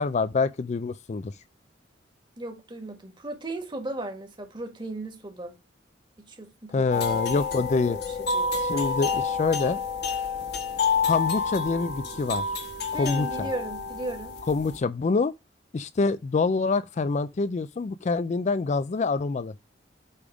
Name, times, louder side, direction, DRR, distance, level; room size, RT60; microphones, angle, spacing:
voice 1, 0.0-1.3 6.7-8.0 8.6-9.8 11.1-12.5 12.9-13.5 14.5-15.3 15.7-19.5, left 4 dB, 40° left, 0.4 m, -26 dB
voice 2, 2.4-5.5 6.2-7.4 7.9-8.7 12.9-14.3, right 2 dB, 25° right, 1.7 m, -36 dB
sound 1, 6.9-14.8, left 4 dB, 60° left, 1.5 m, -29 dB
8.4 x 3.5 x 5.0 m
head